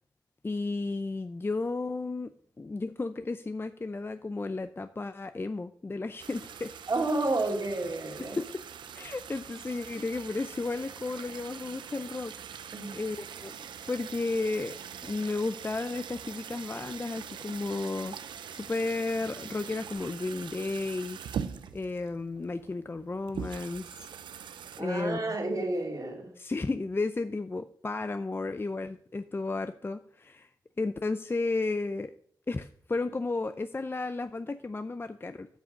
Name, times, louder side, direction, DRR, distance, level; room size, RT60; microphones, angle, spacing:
voice 1, 0.4-2.3 2.6-6.7 8.4-8.5 8.9-13.5 13.8-14.8 15.0-18.2 18.5-21.2 21.7-24.1 24.8-25.4 26.4-30.5 30.8-32.1 32.5-35.5, left 3 dB, 30° left, 10 dB, 0.5 m, -33 dB
sound 1, 6.2-24.8, right 8 dB, 90° right, 0.5 m, -43 dB
voice 2, 6.9-8.4 12.7-13.0 21.5-21.6 24.8-26.3, right 2 dB, 50° right, 1 dB, 2.6 m, -30 dB
9.7 x 6.1 x 5.1 m, 0.63 s
cardioid pair, 50°, 8 cm